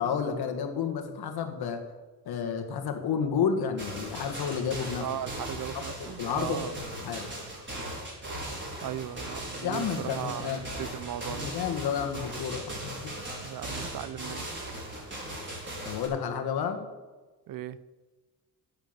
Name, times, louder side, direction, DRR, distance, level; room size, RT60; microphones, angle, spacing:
voice 1, 0.0-1.8 2.3-5.1 6.2-7.3 9.6-10.6 11.3-13.1 15.8-16.9, left 7 dB, 75° left, 6 dB, 1.9 m, -31 dB
sound 1, 3.8-16.1, right 1 dB, 30° right, 5.1 m, -38 dB
voice 2, 5.0-6.8 8.8-11.5 13.4-14.5 17.5-17.8, right 11 dB, 60° right, 17 dB, 0.7 m, -37 dB
10.5 x 9.0 x 7.4 m, 1.3 s
cardioid pair, 100°, 38 cm